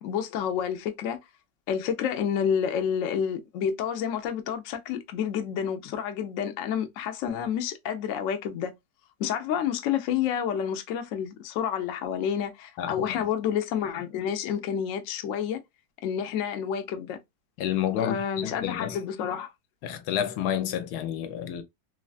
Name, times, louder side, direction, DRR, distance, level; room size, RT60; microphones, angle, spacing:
voice 1, 0.0-1.2 1.7-8.7 9.2-15.6 16.0-17.2 18.0-19.5, left 8 dB, 70° left, 0.8 m, -29 dB
voice 2, 12.8-13.3 17.6-19.0 19.8-21.6, left 10 dB, 85° left, 1.1 m, -30 dB
3.2 x 2.2 x 2.3 m
omnidirectional pair, 1.7 m